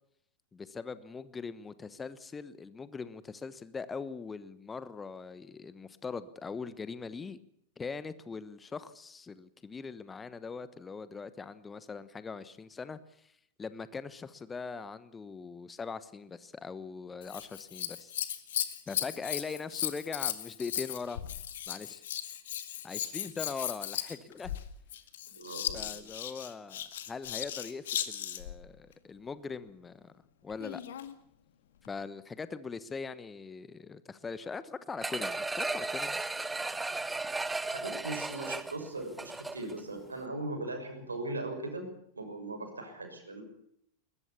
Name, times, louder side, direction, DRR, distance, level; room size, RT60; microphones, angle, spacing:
voice 1, 0.5-7.4 7.8-13.3 13.6-18.1 18.9-21.2 21.7-22.0 22.8-24.6 25.7-30.1 30.4-30.8 31.8-36.2, left 5 dB, 15° left, 15 dB, 1.1 m, -41 dB
Scissors, 17.2-28.6 30.5-31.1 31.8-31.9, left 11 dB, 60° left, 2.0 m, -37 dB
voice 2, 25.3-26.0 37.7-41.8 42.1-43.4, right 2 dB, 75° right, 6 dB, 6.6 m, -39 dB
sound 1, 35.0-39.8 40.2-40.3, right 3 dB, 10° right, 1.0 m, -35 dB
22.0 x 21.0 x 7.1 m, 0.72 s
figure-of-eight pair, 90°, 0 cm